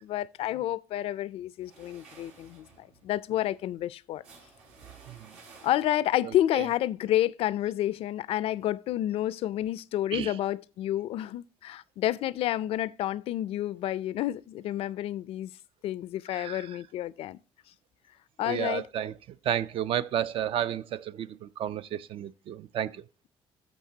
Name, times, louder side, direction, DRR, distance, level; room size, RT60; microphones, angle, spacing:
voice 1, 0.0-4.2 5.6-15.5 15.8-17.4 18.4-18.9, left 13 dB, 70° left, 0.4 m, -30 dB
sound 1, 1.6-6.2, right 3 dB, 85° right, 4.6 m, -55 dB
voice 2, 16.3-16.7 18.4-19.1 19.4-22.9, right 10 dB, 60° right, 0.4 m, -32 dB
13.0 x 6.4 x 2.8 m
cardioid pair, 100°, 10 cm